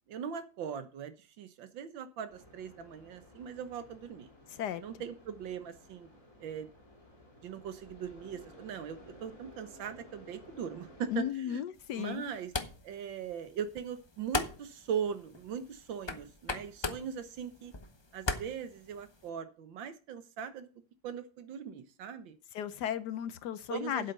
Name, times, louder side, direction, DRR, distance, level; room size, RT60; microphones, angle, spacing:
voice 1, 0.1-4.3 4.8-6.1 6.4-6.7 7.4-11.6 11.9-12.5 12.8-17.7 18.1-20.7 21.0-22.4 23.7-24.1, right 7 dB, 75° right, 11 dB, 1.8 m, -40 dB
sound 1, 2.3-11.3, left 1 dB, 15° left, 2.6 m, -56 dB
voice 2, 4.5-4.8 11.1-12.2 22.5-24.1, left 10 dB, 70° left, 14 dB, 1.1 m, -35 dB
sound 2, 11.7-19.3, left 3 dB, 45° left, 0.3 m, -40 dB
8.1 x 8.1 x 5.4 m, 0.35 s
omnidirectional pair, 2.1 m